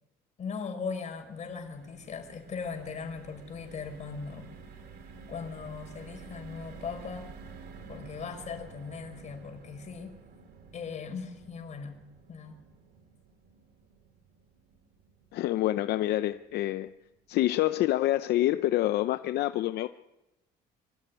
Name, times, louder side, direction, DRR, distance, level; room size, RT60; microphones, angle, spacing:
voice 1, 0.4-4.5 5.3-7.3 7.9-10.2 10.7-12.0 12.3-12.6, left 5 dB, 45° left, 5 dB, 5.3 m, -39 dB
sound 1, 0.9-17.2 17.6-17.7 18.0-18.2, right 5 dB, 70° right, 3.0 m, -51 dB
voice 2, 15.3-16.9 17.3-19.9, left 15 dB, 75° left, 11 dB, 0.6 m, -27 dB
24.5 x 14.0 x 9.6 m, 1.0 s
cardioid pair, 110°, 17 cm